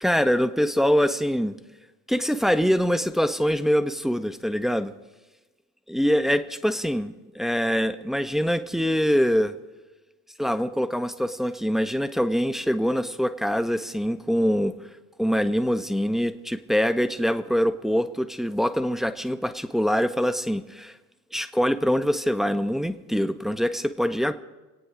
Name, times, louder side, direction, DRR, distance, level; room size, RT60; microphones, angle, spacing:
voice 1, 0.0-1.6 2.1-4.9 5.9-9.5 10.4-14.7 15.2-21.0 21.3-24.3, equal, ahead, 10 dB, 0.8 m, -24 dB
25.0 x 9.1 x 5.0 m, 1.1 s
hypercardioid pair, 50°, 45 cm